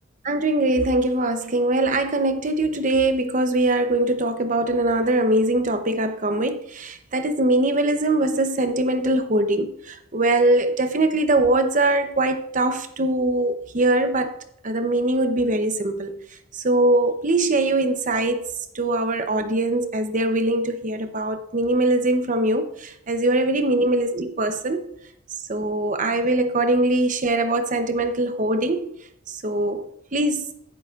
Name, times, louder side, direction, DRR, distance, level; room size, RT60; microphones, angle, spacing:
voice 1, 0.2-14.3 14.6-16.2 16.5-18.4 18.7-24.9 25.5-28.9 29.3-30.4, right 2 dB, 40° right, 0.8 m, -22 dB
10.5 x 10.0 x 2.5 m
head